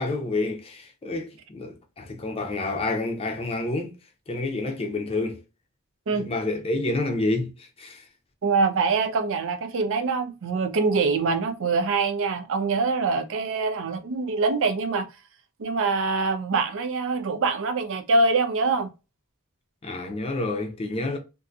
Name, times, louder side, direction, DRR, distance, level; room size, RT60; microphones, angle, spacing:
voice 1, 0.0-3.9 4.3-5.4 6.1-8.1 19.8-21.2, left 2 dB, 25° left, 0.5 m, -29 dB
voice 2, 8.4-15.0 15.6-18.9, right 4 dB, 65° right, 0.5 m, -24 dB
2.6 x 2.6 x 2.3 m
head